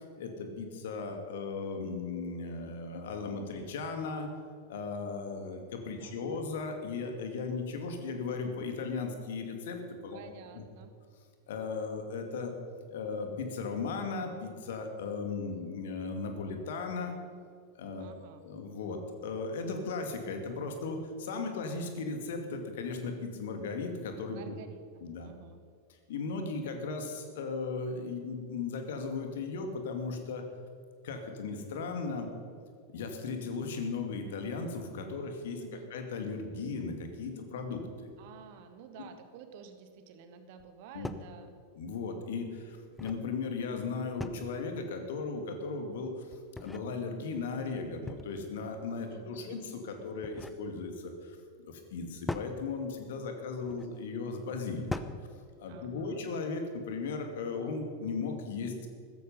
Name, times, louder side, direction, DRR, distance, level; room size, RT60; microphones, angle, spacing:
voice 1, 0.2-4.3 4.7-10.2 10.5-10.6 11.5-12.5 12.9-17.2 17.7-24.5 25.0-25.3 26.1-30.4 31.0-32.3 32.9-35.6 35.9-38.1 40.9-41.1 41.8-54.9 55.6-58.9, left 4 dB, 55° left, 5 dB, 2.4 m, -37 dB
voice 2, 6.0-6.5 10.1-10.9 18.0-18.4 24.3-25.6 35.6-35.9 38.2-41.6 49.1-49.7 55.7-56.3, right 7 dB, 50° right, 8 dB, 1.8 m, -52 dB
sound 1, 40.6-40.7 41.0-41.3 42.7-43.3 44.2-44.7 46.3-46.8 48.1-48.5 50.0-50.6 52.3-52.5 53.6-53.9 54.9-55.3, left 2 dB, 5° left, 0.8 m, -40 dB
15.5 x 14.0 x 5.6 m, 2.2 s
figure-of-eight pair, 90°, 0 cm